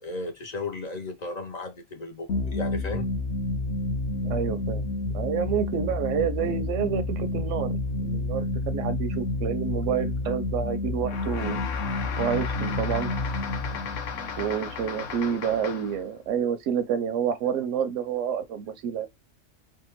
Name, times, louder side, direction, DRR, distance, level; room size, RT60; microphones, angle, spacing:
voice 1, 0.0-3.1 13.6-13.9, left 2 dB, 45° left, 0.5 m, -35 dB
sound 1, 2.3-15.6, left 2 dB, 65° left, 1.0 m, -30 dB
voice 2, 4.2-4.8 5.1-11.6 12.2-13.1 14.1-19.1, right 8 dB, 85° right, 0.9 m, -29 dB
sound 2, 11.0-16.0, left 7 dB, 85° left, 1.0 m, -36 dB
3.5 x 2.2 x 2.9 m
omnidirectional pair, 1.3 m